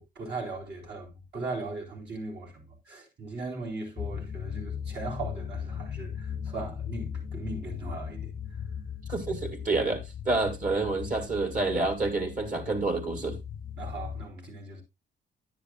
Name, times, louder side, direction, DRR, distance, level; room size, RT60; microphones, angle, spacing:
voice 1, 0.0-8.3 13.8-14.8, right 3 dB, 65° right, 4.6 m, -38 dB
sound 1, 4.0-14.3, left 8 dB, 50° left, 0.6 m, -38 dB
voice 2, 9.1-13.4, right 3 dB, 45° right, 2.2 m, -28 dB
10.5 x 10.0 x 2.4 m
cardioid pair, 95°, 19 cm